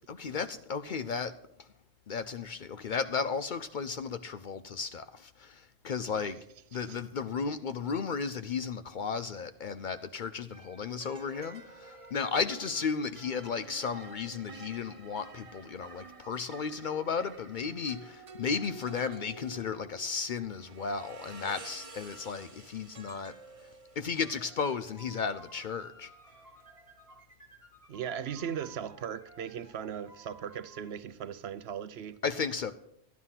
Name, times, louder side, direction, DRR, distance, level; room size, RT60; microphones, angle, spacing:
voice 1, 0.1-1.3 1.6-1.7 2.1-6.4 6.7-23.3 24.0-26.1 32.2-32.7, left 5 dB, 55° left, 0.6 m, -34 dB
sound 1, 9.3-9.6 10.5-27.2, right 3 dB, 35° right, 0.8 m, -51 dB
sound 2, 24.2-30.9, right 1 dB, 15° left, 1.7 m, -56 dB
voice 2, 27.9-32.2, right 8 dB, 70° right, 0.9 m, -38 dB
12.5 x 9.5 x 5.7 m
omnidirectional pair, 1.1 m